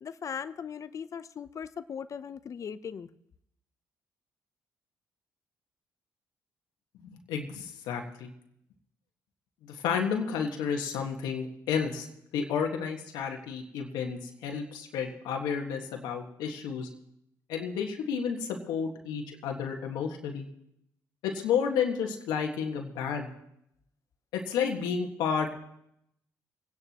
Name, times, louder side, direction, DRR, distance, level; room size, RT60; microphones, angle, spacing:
voice 1, 0.0-3.1, left 7 dB, 50° left, 14 dB, 0.7 m, -39 dB
voice 2, 7.1-8.3 9.6-12.1 12.3-16.9 17.5-20.4 21.2-23.3 24.3-25.6, left 7 dB, 85° left, 2 dB, 1.6 m, -31 dB
25.0 x 9.7 x 3.0 m, 0.77 s
supercardioid pair, 70°, 7 cm